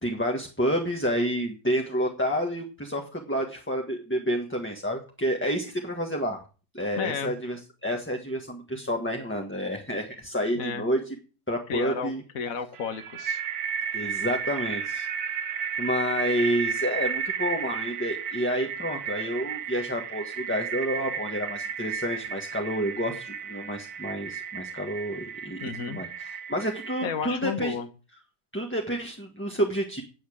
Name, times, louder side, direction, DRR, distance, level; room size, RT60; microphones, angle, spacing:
voice 1, 0.0-6.4 6.7-11.0 11.5-12.2 13.9-15.1 15.8-25.6 25.9-27.7 28.5-30.0, equal, 10° left, 2 dB, 1.4 m, -29 dB
voice 2, 7.0-7.4 10.6-10.9 11.7-13.4 25.6-26.0 27.0-27.9, left 6 dB, 55° left, 10 dB, 1.7 m, -32 dB
sound 1, 12.8-27.1, right 7 dB, 65° right, 1.3 m, -33 dB
9.3 x 7.2 x 8.6 m, 0.35 s
omnidirectional pair, 1.8 m